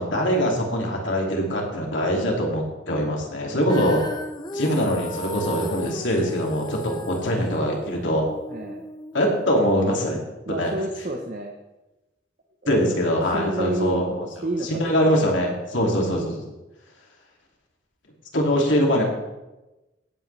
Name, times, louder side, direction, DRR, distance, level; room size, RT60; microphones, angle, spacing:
voice 1, 0.0-4.0 4.5-8.3 9.1-10.2 10.5-10.7 12.7-14.2 14.6-16.5 18.3-19.0, equal, 85° left, -1 dB, 2.6 m, -23 dB
Female singing, 3.7-9.9, left 1 dB, 20° left, 0.7 m, -36 dB
voice 2, 8.5-8.8 10.5-11.5 12.6-12.8 13.3-14.0 14.4-14.8, right 1 dB, 45° right, 2 dB, 1.0 m, -29 dB
17.0 x 8.4 x 3.4 m, 1.0 s
head